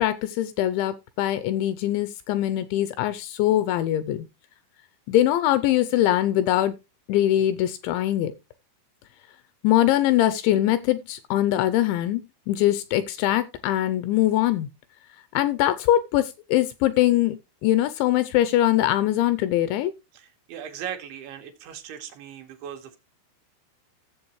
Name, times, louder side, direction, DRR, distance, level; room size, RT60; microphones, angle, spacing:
voice 1, 0.0-4.3 5.1-6.8 7.1-8.3 9.6-12.2 12.5-14.7 15.3-17.4 17.6-19.9, left 13 dB, 80° left, 2.7 m, -22 dB
voice 2, 20.1-23.0, right 9 dB, 70° right, 3.7 m, -38 dB
16.0 x 7.3 x 3.1 m
omnidirectional pair, 5.6 m